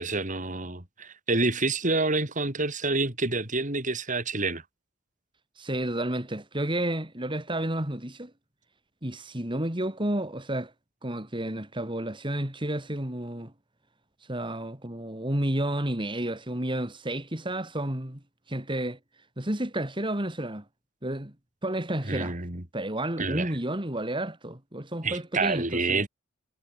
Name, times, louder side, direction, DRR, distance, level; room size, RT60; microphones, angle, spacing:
voice 1, 0.0-4.6 22.1-22.6 23.2-23.5 25.0-26.1, right 3 dB, 40° right, 3.9 m, -28 dB
voice 2, 5.6-8.3 9.0-10.7 11.0-13.5 14.2-19.0 19.4-20.6 21.0-21.3 21.6-22.4 22.7-26.1, right 1 dB, 25° right, 3.1 m, -31 dB
head